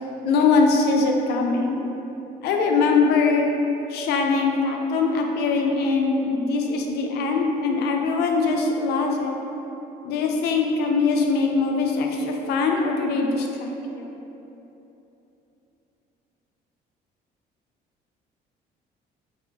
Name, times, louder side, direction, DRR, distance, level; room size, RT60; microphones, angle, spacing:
voice 1, 0.2-1.8 2.4-3.5 3.9-9.4 10.0-14.1, left 4 dB, 75° left, 2 dB, 0.4 m, -22 dB
4.1 x 2.3 x 2.8 m, 3.0 s
cardioid pair, 110°, 17 cm